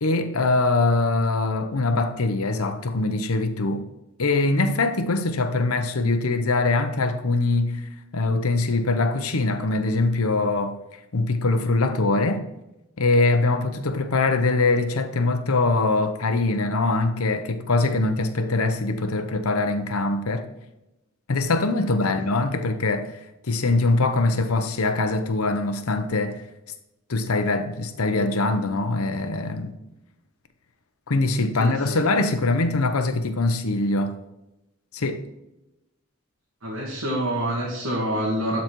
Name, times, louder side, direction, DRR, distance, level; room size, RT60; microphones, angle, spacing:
voice 1, 0.0-3.9 4.2-10.8 11.1-12.4 13.0-20.5 21.3-23.2 23.5-26.4 27.1-29.7 31.1-34.2 34.9-35.3, left 3 dB, 90° left, 0.9 m, -23 dB
voice 2, 31.6-32.0 36.6-38.6, right 1 dB, 80° right, 1.6 m, -27 dB
12.0 x 4.1 x 4.5 m
head